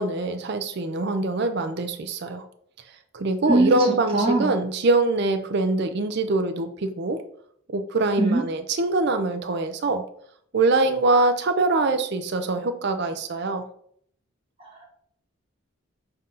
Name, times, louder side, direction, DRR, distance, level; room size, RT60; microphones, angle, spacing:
voice 1, 0.0-2.4 3.1-7.2 7.7-10.0 10.5-13.6, right 2 dB, 50° right, 8 dB, 0.4 m, -23 dB
voice 2, 3.5-3.8 4.1-4.5 8.2-8.4 14.6-14.8, right 2 dB, 25° right, -2 dB, 1.2 m, -21 dB
7.4 x 2.6 x 5.4 m, 0.67 s
head